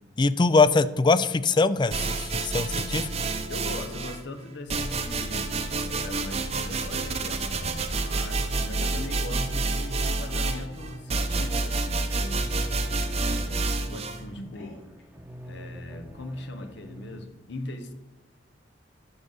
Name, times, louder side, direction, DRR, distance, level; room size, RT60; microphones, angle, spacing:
voice 1, 0.2-3.1, left 3 dB, 25° left, 0.3 m, -22 dB
sound 1, 1.9-4.2 4.7-14.2, right 3 dB, 35° right, 0.8 m, -28 dB
voice 2, 3.5-12.5 13.0-14.8 15.4-17.9, left 2 dB, 70° left, 0.9 m, -40 dB
sound 2, 8.3-17.3, equal, 10° right, 0.9 m, -45 dB
sound 3, 14.3-15.1, left 1 dB, 85° left, 2.0 m, -51 dB
11.5 x 4.0 x 6.7 m
head